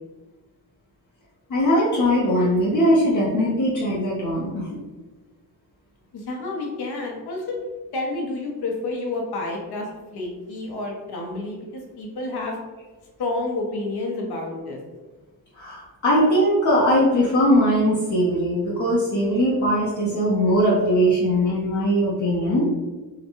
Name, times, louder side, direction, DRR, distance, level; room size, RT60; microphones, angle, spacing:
voice 1, 1.5-4.7 15.6-22.7, equal, 50° left, -6 dB, 0.7 m, -20 dB
voice 2, 6.1-7.6 7.9-9.9 10.1-12.6 13.2-14.8, left 2 dB, 75° left, 0 dB, 0.9 m, -29 dB
3.8 x 2.2 x 3.0 m, 1.2 s
cardioid pair, 105°, 39 cm